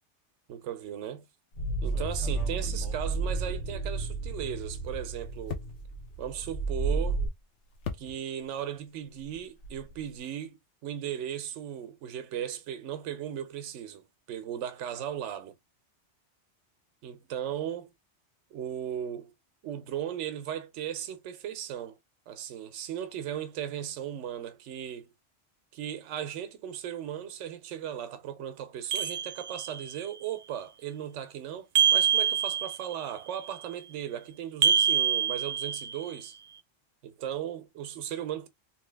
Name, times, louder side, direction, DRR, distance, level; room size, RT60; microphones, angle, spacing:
voice 1, 0.5-1.3 1.8-5.6 6.2-7.2 8.0-15.6 17.0-17.9 18.5-19.3 19.6-22.0 22.3-25.1 25.7-36.4 37.0-38.5, right 10 dB, 85° right, 0.9 m, -37 dB
sound 1, 1.5-4.2 4.6-8.6 8.9-10.2, left 6 dB, 85° left, 1.1 m, -45 dB
sound 2, 1.6-7.3, right 3 dB, 50° left, 1.1 m, -32 dB
sound 3, 28.9-29.9 31.8-33.0 34.6-36.1, right 8 dB, 60° right, 0.6 m, -26 dB
3.0 x 2.7 x 3.2 m
omnidirectional pair, 1.2 m